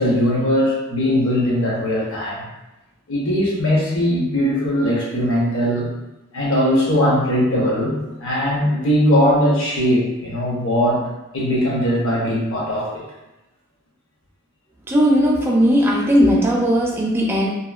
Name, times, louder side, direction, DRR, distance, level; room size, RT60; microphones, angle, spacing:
voice 1, 0.0-2.4 3.1-5.9 6.3-11.0 11.3-13.0, equal, 60° left, -5 dB, 0.8 m, -19 dB
voice 2, 14.9-17.5, equal, 10° right, -3 dB, 0.4 m, -17 dB
2.8 x 2.4 x 2.3 m, 0.99 s
head